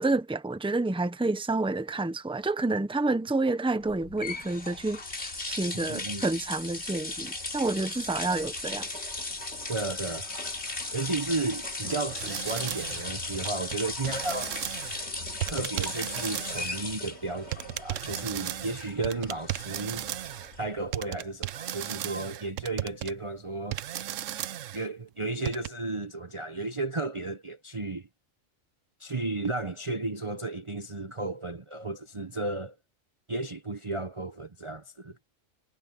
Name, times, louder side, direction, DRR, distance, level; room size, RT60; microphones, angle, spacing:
voice 1, 0.0-8.9, right 2 dB, 5° right, 0.9 m, -29 dB
sound 1, 3.9-20.9, left 2 dB, 55° left, 3.4 m, -37 dB
voice 2, 5.7-6.2 9.7-10.3 10.9-14.6 15.5-20.1 20.6-23.8 24.7-28.1 29.0-32.7 33.3-35.2, right 3 dB, 25° right, 0.8 m, -33 dB
sound 2, 11.9-15.1 15.4-16.8 17.5-20.6 20.9-23.1 23.7-24.9 25.4-25.7, right 12 dB, 75° right, 1.0 m, -35 dB
omnidirectional pair, 1.3 m